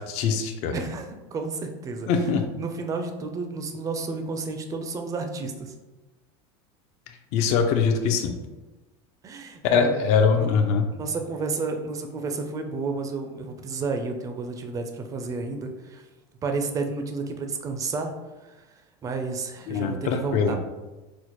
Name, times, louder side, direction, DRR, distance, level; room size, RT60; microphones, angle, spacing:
voice 1, 0.0-0.7 2.1-2.6 7.3-8.4 9.6-10.9 19.7-20.6, left 5 dB, 55° left, 5 dB, 0.4 m, -23 dB
voice 2, 0.7-2.1 2.6-5.7 9.2-10.0 10.3-10.5 10.9-16.1 16.4-18.1 18.4-18.6 19.0-20.6, right 4 dB, 25° right, 5 dB, 0.4 m, -31 dB
4.3 x 2.1 x 2.9 m, 1.1 s
supercardioid pair, 130°, 14 cm